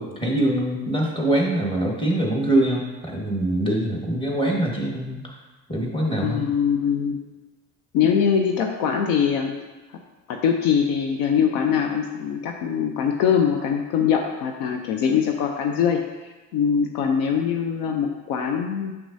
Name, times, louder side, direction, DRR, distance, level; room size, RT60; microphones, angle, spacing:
voice 1, 0.0-5.2 5.7-6.4, right 1 dB, 15° left, -1 dB, 1.6 m, -23 dB
voice 2, 6.2-7.2 7.9-9.5 10.3-18.9, left 7 dB, 65° left, 3 dB, 0.6 m, -22 dB
6.1 x 5.9 x 2.7 m, 1.2 s
hypercardioid pair, 55°, 40 cm